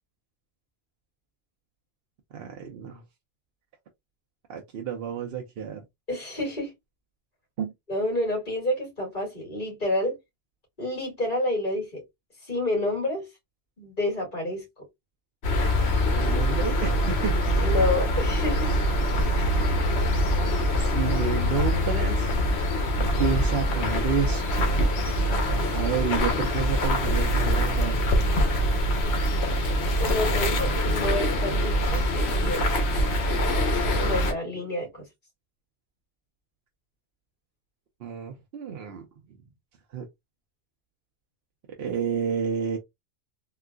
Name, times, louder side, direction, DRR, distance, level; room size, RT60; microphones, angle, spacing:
voice 1, 2.3-3.0 4.5-5.8 7.6-7.7 16.1-17.3 20.7-22.3 22.9-24.8 25.7-28.0 30.4-30.6 38.0-39.0 39.9-40.0 41.8-42.8, right 7 dB, 60° right, 0.8 m, -30 dB
voice 2, 6.1-6.7 7.9-10.2 10.8-12.0 12.4-13.3 13.8-14.6 17.6-18.7 30.0-32.7 34.0-35.0, left 1 dB, 40° left, 2.2 m, -29 dB
sound 1, 15.4-34.3, equal, 65° left, 1.1 m, -24 dB
3.8 x 2.3 x 2.2 m
omnidirectional pair, 1.2 m